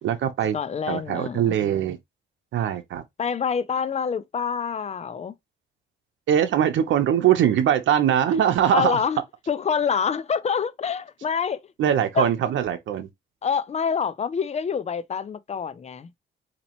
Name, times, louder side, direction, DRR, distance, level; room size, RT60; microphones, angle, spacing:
voice 1, 0.0-0.6 0.9-2.0 2.5-3.0 6.3-9.0 11.8-13.1, right 10 dB, 70° right, 0.8 m, -22 dB
voice 2, 0.5-1.6 3.2-5.4 8.7-9.2 9.5-11.6 12.1-12.3 13.4-16.2, left 6 dB, 35° left, 0.5 m, -26 dB
4.1 x 2.9 x 2.9 m
cardioid pair, 90°, 20 cm